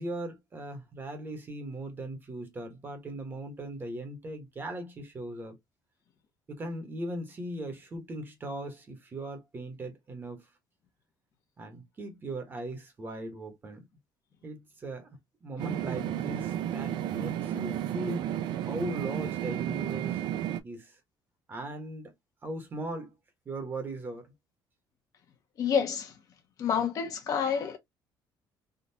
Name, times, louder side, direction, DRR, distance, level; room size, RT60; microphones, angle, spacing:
voice 1, 0.0-5.6 6.5-10.5 11.6-13.8 14.4-18.3 18.6-20.2 20.6-21.0 21.5-22.1 22.4-23.1 23.4-24.3, right 1 dB, 25° right, 1.1 m, -39 dB
sound 1, 15.6-20.6, right 11 dB, 70° right, 0.5 m, -32 dB
voice 2, 25.6-26.1 26.6-27.8, left 7 dB, 50° left, 1.0 m, -28 dB
3.7 x 2.5 x 2.7 m
cardioid pair, 145°, 8 cm